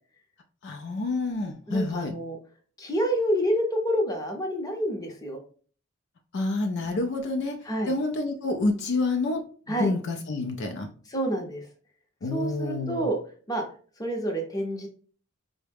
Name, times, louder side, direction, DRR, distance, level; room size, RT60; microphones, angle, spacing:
voice 1, 0.6-2.2 6.3-7.6 7.9-10.9 12.2-13.0, left 2 dB, 55° left, 5 dB, 0.4 m, -28 dB
voice 2, 1.7-2.4 2.8-5.4 7.6-7.9 9.7-9.9 11.1-11.7 12.3-13.2 13.5-13.6 14.0-14.9, equal, 15° left, 2 dB, 0.6 m, -28 dB
4.5 x 2.0 x 3.3 m, 0.43 s
head